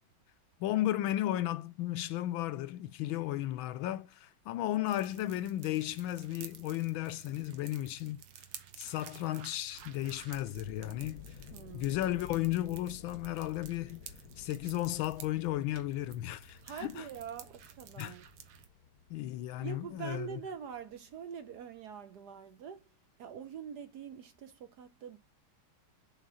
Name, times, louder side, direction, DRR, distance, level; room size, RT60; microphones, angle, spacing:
voice 1, 0.6-8.2 8.8-11.2 11.7-14.0 14.4-17.0 18.0-18.2 19.1-20.3, left 14 dB, 80° left, 1.4 m, -34 dB
sound 1, 4.9-18.7, right 9 dB, 90° right, 1.9 m, -53 dB
sound 2, 9.8-21.2, left 8 dB, 60° left, 1.0 m, -54 dB
voice 2, 11.5-12.0 16.6-18.2 19.6-22.9 23.2-25.2, right 7 dB, 65° right, 1.1 m, -44 dB
7.4 x 3.8 x 5.5 m
omnidirectional pair, 2.3 m